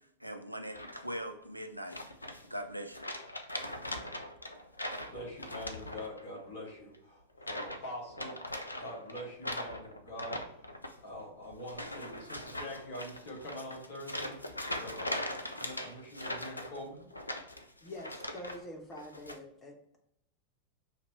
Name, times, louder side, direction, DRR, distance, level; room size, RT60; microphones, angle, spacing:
voice 1, 0.2-2.0 2.5-3.1, equal, 90° right, 6 dB, 0.4 m, -41 dB
sound 1, 0.7-1.3 1.9-2.6 2.9-6.4 6.6-7.0 7.4-7.8 8.1-18.6 18.9-19.4, left 1 dB, 85° left, 0.4 m, -41 dB
voice 2, 5.1-8.5 8.8-10.4 11.0-14.4 14.8-17.1, left 1 dB, 55° left, -2 dB, 1.7 m, -44 dB
voice 3, 17.8-20.0, left 1 dB, 20° left, 2 dB, 1.0 m, -46 dB
5.7 x 2.9 x 3.1 m, 0.78 s
figure-of-eight pair, 90°, 0 cm